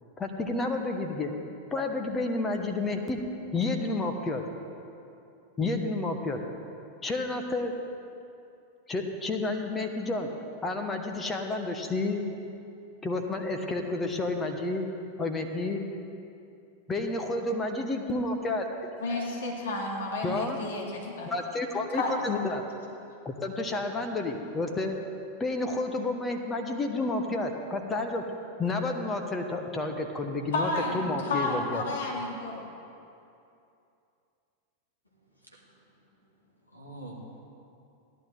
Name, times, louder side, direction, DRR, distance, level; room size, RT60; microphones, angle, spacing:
voice 1, 0.2-1.3 1.7-3.2 3.5-4.4 5.6-6.4 7.0-7.7 8.9-10.3 10.6-12.2 13.0-14.9 15.2-15.8 16.9-18.6 20.2-20.6 21.3-22.6 23.2-24.9 25.4-28.2 28.6-31.8, left 2 dB, 20° left, 4 dB, 1.2 m, -30 dB
voice 2, 19.0-21.3 21.9-22.1 30.5-32.7, left 2 dB, 60° left, -1 dB, 2.4 m, -31 dB
voice 3, 35.4-35.9 36.6-37.4, right 1 dB, 85° left, -2 dB, 2.3 m, -46 dB
17.0 x 11.5 x 3.8 m, 2.6 s
figure-of-eight pair, 90°, 0 cm